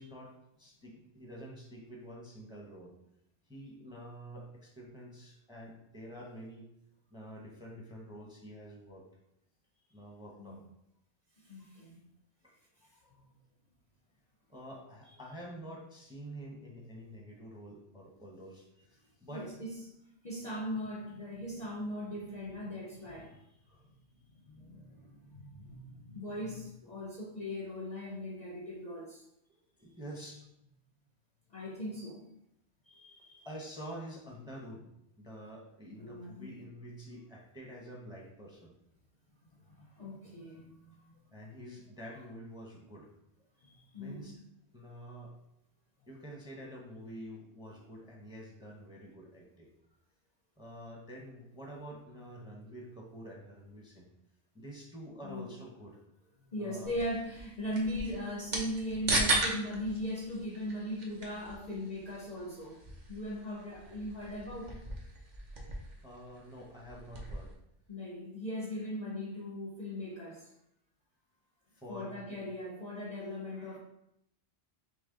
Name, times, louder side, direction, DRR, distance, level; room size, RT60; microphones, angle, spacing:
voice 1, 0.0-2.9 3.5-6.7 7.1-9.0 9.9-10.6 12.4-12.5 14.5-19.5 23.7-23.9 29.8-30.5 33.4-34.9 35.2-38.7 41.3-43.1 44.0-44.4 44.7-45.4 46.1-49.7 50.6-54.1 54.5-56.0 56.6-57.1 66.0-67.5 71.7-72.4, equal, 5° right, -1 dB, 0.6 m, -48 dB
voice 2, 11.4-12.1 13.1-13.2 19.3-19.7 20.2-23.4 24.5-29.2 31.5-32.3 32.9-33.5 35.9-36.5 39.7-41.1 43.6-44.4 55.2-55.5 56.5-62.8 63.1-64.8 67.9-70.5 71.9-73.8, left 1 dB, 45° left, -2 dB, 0.6 m, -39 dB
sound 1, 56.8-67.5, right 2 dB, 45° right, 0.9 m, -38 dB
5.7 x 2.1 x 3.7 m, 0.79 s
omnidirectional pair, 1.2 m